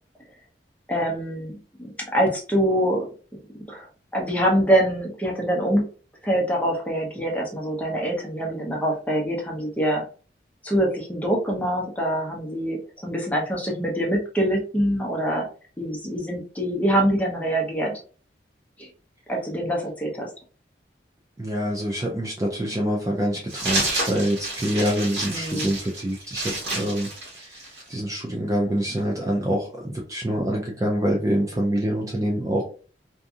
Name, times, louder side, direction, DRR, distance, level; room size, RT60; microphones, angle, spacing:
voice 1, 0.9-3.1 3.7-3.9 4.1-5.9 6.2-10.0 10.6-15.5 15.8-17.9 19.3-20.3 25.2-25.7, right 1 dB, 10° left, -2 dB, 0.7 m, -24 dB
voice 2, 21.4-32.6, equal, 20° right, -1 dB, 0.4 m, -26 dB
sound 1, 23.5-27.9, right 2 dB, 75° right, 1.3 m, -29 dB
2.6 x 2.6 x 2.3 m, 0.38 s
head